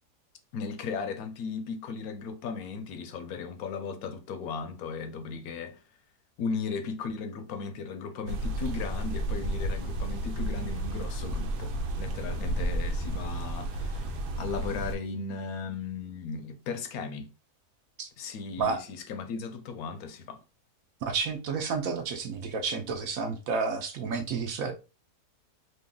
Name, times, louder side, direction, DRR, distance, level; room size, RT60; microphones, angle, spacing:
voice 1, 0.5-5.8 6.4-17.3 18.2-20.4, left 5 dB, 70° left, 1.0 m, -36 dB
sound 1, 8.3-15.0, right 1 dB, 90° right, 1.2 m, -32 dB
voice 2, 21.0-24.7, right 5 dB, 65° right, 0.9 m, -30 dB
3.0 x 2.7 x 3.7 m
omnidirectional pair, 1.7 m